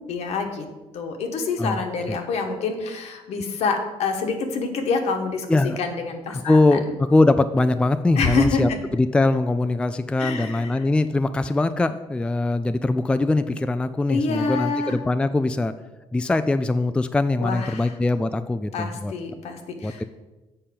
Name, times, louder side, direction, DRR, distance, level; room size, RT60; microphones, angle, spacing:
voice 1, 0.1-0.7 0.9-5.5 5.8-6.8 8.2-8.8 10.2-10.7 14.1-15.0 17.4-17.9 18.7-20.0, left 4 dB, 70° left, 4 dB, 1.3 m, -26 dB
voice 2, 6.3-15.7 16.1-19.1 19.8-20.0, left 2 dB, 10° left, 10 dB, 0.3 m, -22 dB
7.5 x 4.3 x 6.9 m, 1.1 s
cardioid pair, 95°, 11 cm